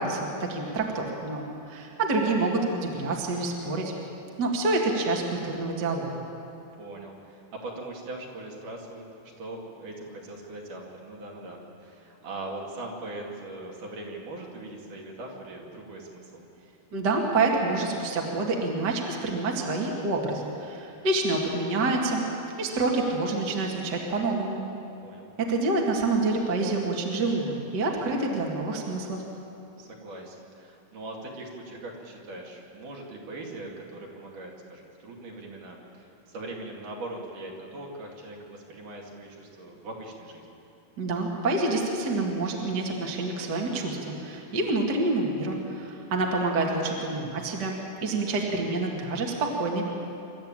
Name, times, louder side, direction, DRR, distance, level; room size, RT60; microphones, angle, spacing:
voice 1, 0.0-3.9 4.4-6.1 16.9-22.2 22.6-24.6 25.4-29.2 41.0-49.9, right 2 dB, 35° right, 0 dB, 2.2 m, -27 dB
voice 2, 6.8-16.5 25.0-25.3 29.8-40.6, right 2 dB, 60° right, -1 dB, 3.8 m, -41 dB
26.0 x 13.0 x 9.0 m, 2.8 s
omnidirectional pair, 4.2 m